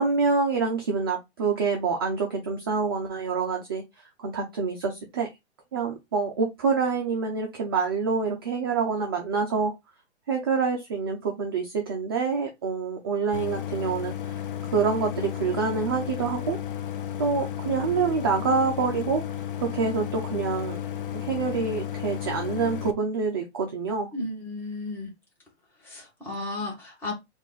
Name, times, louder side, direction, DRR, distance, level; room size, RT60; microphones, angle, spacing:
voice 1, 0.0-3.8 4.2-5.3 5.7-9.7 10.3-14.1 14.7-16.6 17.2-19.2 19.6-20.8 21.1-24.1, right 5 dB, 20° right, 0.4 m, -26 dB
Idling, 13.3-22.9, left 10 dB, 50° left, 0.6 m, -33 dB
voice 2, 24.1-25.1 25.8-27.1, left 2 dB, 5° left, 1.1 m, -34 dB
4.5 x 2.4 x 3.8 m
hypercardioid pair, 150°, 34 cm